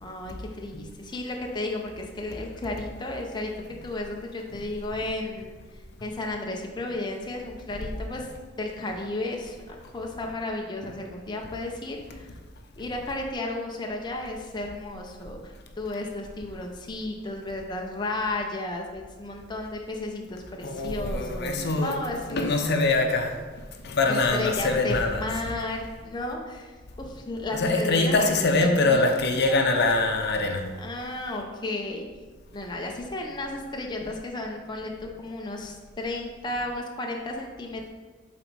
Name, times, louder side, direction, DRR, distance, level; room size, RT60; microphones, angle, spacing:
voice 1, 0.0-3.5 3.8-5.6 6.0-8.3 8.6-12.3 12.8-22.5 24.1-28.3 28.7-29.7 30.8-32.1 32.5-37.9, left 2 dB, 25° left, 0 dB, 0.7 m, -33 dB
voice 2, 20.6-21.9 22.3-23.4 23.8-25.2 27.5-30.6, left 2 dB, 60° left, 3 dB, 0.8 m, -23 dB
7.5 x 4.0 x 4.6 m, 1.4 s
head